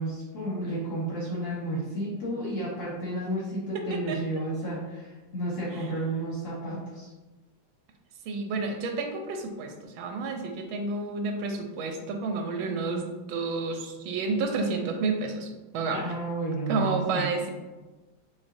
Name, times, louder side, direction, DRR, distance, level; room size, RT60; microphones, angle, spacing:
voice 1, 0.0-7.1 15.9-17.3, right 1 dB, 50° left, -6 dB, 1.2 m, -32 dB
voice 2, 8.3-16.0 16.7-17.5, right 3 dB, 85° right, 4 dB, 1.4 m, -30 dB
6.1 x 2.9 x 2.6 m, 1.2 s
omnidirectional pair, 2.2 m